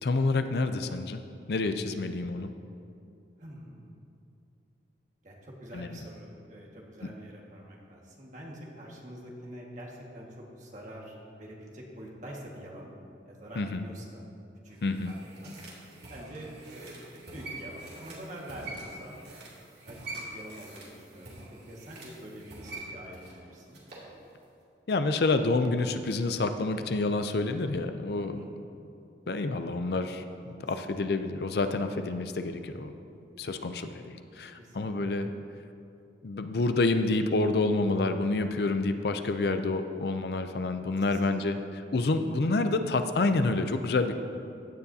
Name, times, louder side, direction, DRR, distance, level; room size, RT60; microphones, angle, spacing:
voice 1, 0.0-1.2 1.5-2.5 5.7-6.0 13.6-13.8 14.8-15.1 24.9-28.4 29.3-30.2 30.7-32.9 33.4-35.3 36.2-44.2, left 3 dB, 60° left, 8 dB, 0.5 m, -28 dB
voice 2, 3.4-3.9 5.2-12.9 13.2-14.2 14.6-15.6 16.1-19.2 19.8-20.0 20.3-21.4 21.7-23.8 28.2-28.5 32.1-32.2 34.5-35.3 40.5-40.6 41.1-41.2, right 1 dB, 45° right, -3 dB, 1.7 m, -45 dB
sound 1, 14.7-24.1 24.4-24.5, right 2 dB, 65° right, 2.5 m, -45 dB
15.5 x 9.4 x 2.8 m, 2.6 s
head